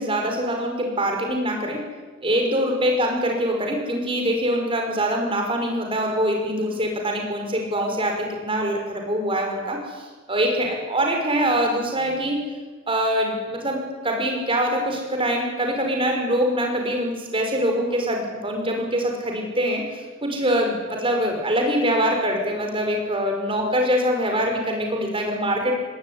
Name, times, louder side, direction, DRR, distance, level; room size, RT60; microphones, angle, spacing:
voice 1, 0.0-1.8 2.2-12.4 12.9-25.8, equal, 25° right, 2 dB, 6.0 m, -24 dB
20.5 x 18.5 x 9.9 m, 1.3 s
head